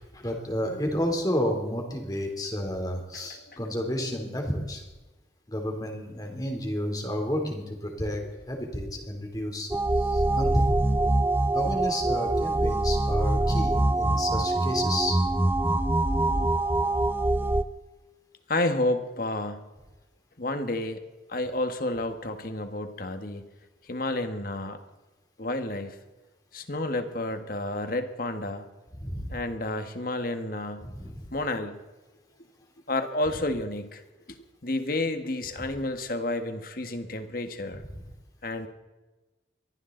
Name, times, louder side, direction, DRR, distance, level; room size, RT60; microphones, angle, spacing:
voice 1, 0.1-4.8 5.5-9.7 9.9-10.7 11.5-15.2 28.9-29.3 30.8-31.2 35.6-35.8, equal, 20° left, 2 dB, 3.3 m, -31 dB
sound 1, 9.7-17.6, right 2 dB, 10° right, 0.5 m, -24 dB
voice 2, 18.5-19.7 20.4-21.0 21.3-23.5 23.9-24.8 25.4-25.9 26.5-28.7 29.3-30.9 31.3-31.8 32.9-34.0 34.6-37.8 38.4-38.7, left 2 dB, 50° left, 7 dB, 1.7 m, -30 dB
23.5 x 15.0 x 4.0 m, 1.1 s
head